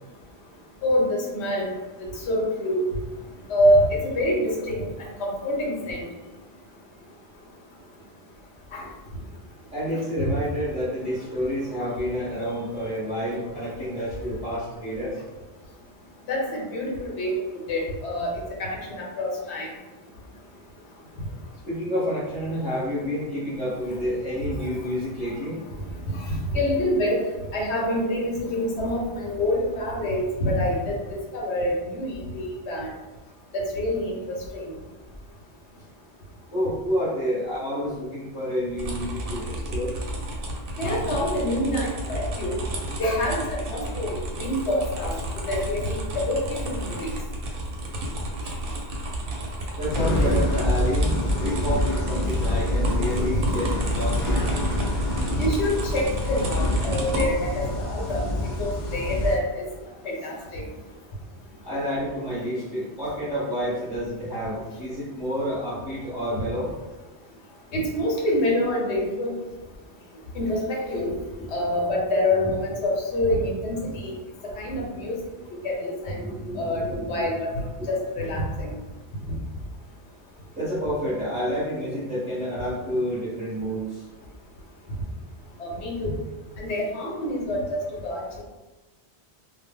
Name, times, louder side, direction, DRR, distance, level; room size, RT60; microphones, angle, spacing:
voice 1, 0.8-1.7 2.3-2.9 3.5-4.8 5.2-6.1 8.7-8.9 16.3-17.3 17.7-19.7 26.1-27.2 27.5-32.9 33.5-34.2 34.5-34.6 40.8-42.6 43.0-44.1 44.4-45.2 45.5-47.1 55.3-58.2 58.6-59.6 60.0-60.6 67.7-69.4 70.3-71.1 71.5-74.1 74.6-75.2 75.6-76.2 76.6-77.5 77.9-78.7 85.6-86.2 86.6-88.4, left 1 dB, 75° left, -1 dB, 1.0 m, -26 dB
voice 2, 9.7-15.2 21.7-25.6 36.5-39.9 49.7-54.5 61.6-66.7 71.4-71.5 76.2-77.3 80.5-84.0, equal, 10° right, -12 dB, 0.6 m, -29 dB
sound 1, 38.8-57.5, right 1 dB, 60° right, 0.7 m, -31 dB
sound 2, 49.9-59.4, left 1 dB, 55° left, 0.5 m, -26 dB
2.1 x 2.0 x 3.5 m, 1.2 s
omnidirectional pair, 1.1 m